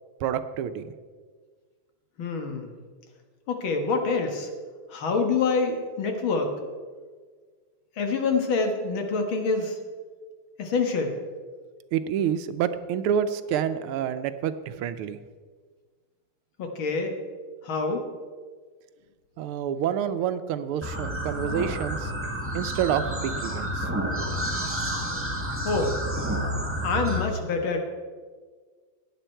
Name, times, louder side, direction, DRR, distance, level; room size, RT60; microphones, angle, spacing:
voice 1, 0.2-0.9 11.9-15.2 19.4-22.1 22.5-23.9, right 9 dB, 85° right, 12 dB, 1.6 m, -28 dB
voice 2, 2.2-2.7 3.5-4.5 4.9-6.6 8.0-9.8 10.6-11.1 16.6-17.1 17.6-18.1 25.6-26.0 26.8-27.8, left 4 dB, 70° left, 4 dB, 2.2 m, -26 dB
sound 1, 20.8-27.2, right 1 dB, 5° right, 1.6 m, -30 dB
16.0 x 9.3 x 4.5 m, 1.6 s
omnidirectional pair, 2.3 m